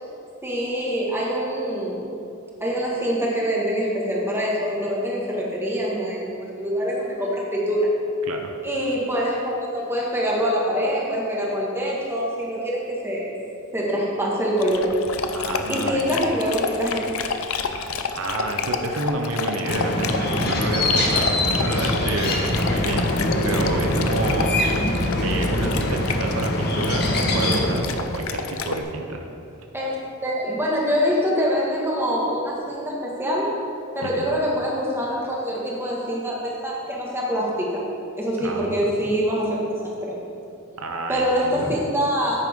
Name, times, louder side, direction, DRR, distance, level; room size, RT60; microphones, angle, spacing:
voice 1, 0.4-2.1 2.6-8.0 8.6-13.3 13.7-14.9 15.7-17.3 29.7-30.0 30.2-33.5 33.9-37.9 38.2-40.2 41.1-42.4, equal, 10° right, -4 dB, 1.8 m, -24 dB
Dog, 14.6-28.8, left 5 dB, 80° left, 0.6 m, -30 dB
voice 2, 15.3-16.1 17.7-24.5 25.2-29.2 34.0-34.3 38.4-38.9 40.8-41.7, right 2 dB, 75° right, 3 dB, 0.8 m, -30 dB
sound 1, 19.7-27.7, left 1 dB, 50° left, 1.3 m, -23 dB
9.8 x 9.3 x 3.7 m, 2.7 s
head